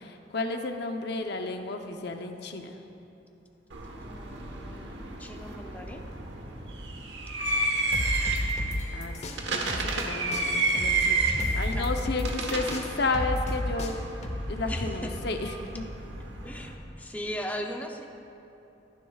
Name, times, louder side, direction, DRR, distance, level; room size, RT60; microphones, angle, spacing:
voice 1, 0.0-2.7 8.9-9.2 9.5-13.9 14.5-15.8, left 3 dB, 65° left, 5 dB, 0.8 m, -32 dB
sound 1, 3.7-16.8, right 3 dB, 70° right, 1.2 m, -32 dB
voice 2, 3.9-6.1 11.7-12.1 14.7-15.2 16.4-18.1, equal, 10° left, 2 dB, 0.6 m, -39 dB
sound 2, 7.9-10.0 10.3-14.9, left 1 dB, 40° left, 0.9 m, -32 dB
22.5 x 10.5 x 2.4 m, 2.8 s
head